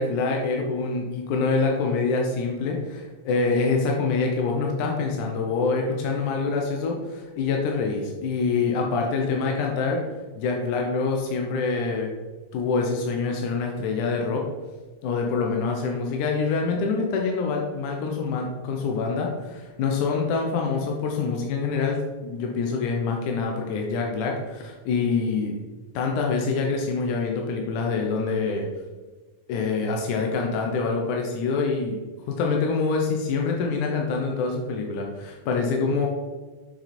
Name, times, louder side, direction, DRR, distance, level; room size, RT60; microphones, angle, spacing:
voice 1, 0.0-10.0 10.4-12.1 12.5-14.4 15.0-25.6 25.9-28.7 29.5-32.0 32.3-36.1, left 4 dB, 85° left, 1 dB, 2.5 m, -25 dB
8.1 x 6.2 x 4.3 m, 1.3 s
omnidirectional pair, 3.5 m